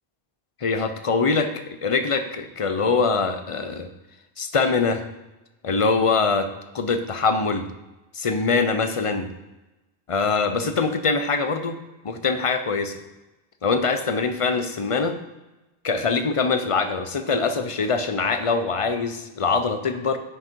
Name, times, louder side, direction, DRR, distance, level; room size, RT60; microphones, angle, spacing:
voice 1, 0.6-3.9 4.4-5.0 5.6-6.5 6.7-7.7 8.1-9.3 10.1-11.8 12.0-13.0 13.6-15.1 15.8-20.2, left 4 dB, 35° left, 9 dB, 0.7 m, -23 dB
9.5 x 6.3 x 4.5 m, 1.0 s
omnidirectional pair, 1.1 m